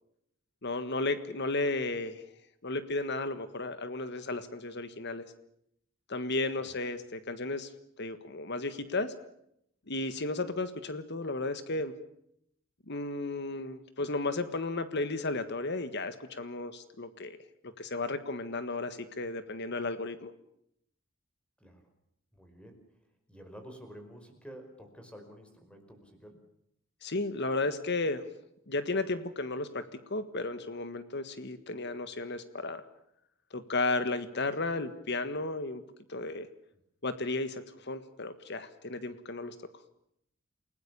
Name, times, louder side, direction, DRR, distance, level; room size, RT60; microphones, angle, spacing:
voice 1, 0.6-2.2 2.6-5.2 6.1-7.7 8.0-9.1 9.9-11.9 12.9-17.4 17.8-20.3 27.0-28.3 28.7-29.8 30.1-32.8 33.5-35.8 36.1-36.5 37.0-39.5, left 2 dB, 55° left, 11 dB, 1.6 m, -34 dB
voice 2, 21.6-21.9 22.3-23.0 23.3-26.4, equal, 5° left, 5 dB, 5.1 m, -50 dB
29.5 x 19.0 x 6.9 m, 0.74 s
head